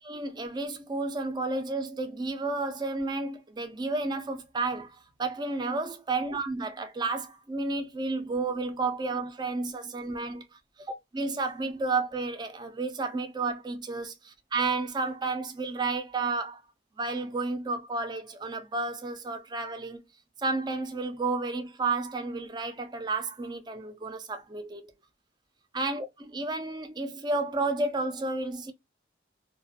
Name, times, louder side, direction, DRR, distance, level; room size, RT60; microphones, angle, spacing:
voice 1, 0.1-10.4 11.1-14.1 14.5-16.6 17.0-20.0 20.4-24.9 25.7-26.1 26.3-28.7, right 3 dB, 25° right, 0.4 m, -31 dB
2.4 x 2.3 x 2.6 m
head